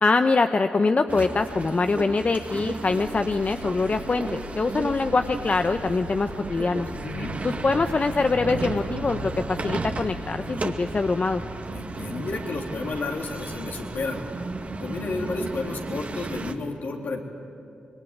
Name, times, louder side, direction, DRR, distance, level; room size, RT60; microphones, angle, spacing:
voice 1, 0.0-6.9 7.4-11.4, left 3 dB, 45° left, 8 dB, 1.0 m, -24 dB
sound 1, 1.1-16.5, right 3 dB, 45° right, 2.1 m, -34 dB
Engine, 3.0-10.2, left 3 dB, 85° left, 2.9 m, -43 dB
voice 2, 7.0-7.3 11.7-14.2 14.8-17.2, left 3 dB, 65° left, 1 dB, 3.5 m, -31 dB
25.5 x 22.0 x 9.6 m, 2.6 s
supercardioid pair, 40°, 3 cm